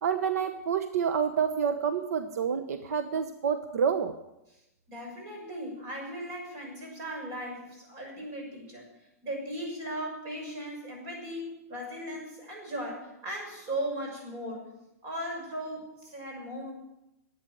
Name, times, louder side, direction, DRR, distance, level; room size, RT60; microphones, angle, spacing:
voice 1, 0.0-4.1, right 7 dB, 80° right, 8 dB, 1.0 m, -28 dB
voice 2, 4.9-8.9 9.2-14.7 15.0-16.7, equal, 35° right, 0 dB, 6.2 m, -37 dB
11.5 x 8.7 x 9.2 m, 0.90 s
hypercardioid pair, 160°, 8 cm